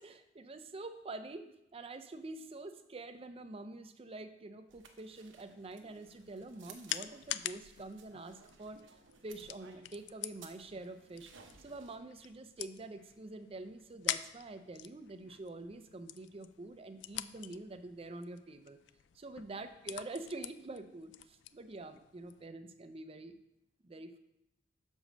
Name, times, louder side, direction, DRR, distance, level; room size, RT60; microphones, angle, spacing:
voice 1, 0.0-8.8 9.2-11.3 11.6-18.8 19.1-23.4 23.8-24.2, right 2 dB, 30° right, 9 dB, 0.5 m, -46 dB
sound 1, 4.7-12.0, right 5 dB, 70° right, 0.8 m, -59 dB
sound 2, 6.1-22.5, left 13 dB, 65° left, 0.3 m, -46 dB
6.2 x 5.0 x 6.4 m, 0.85 s
head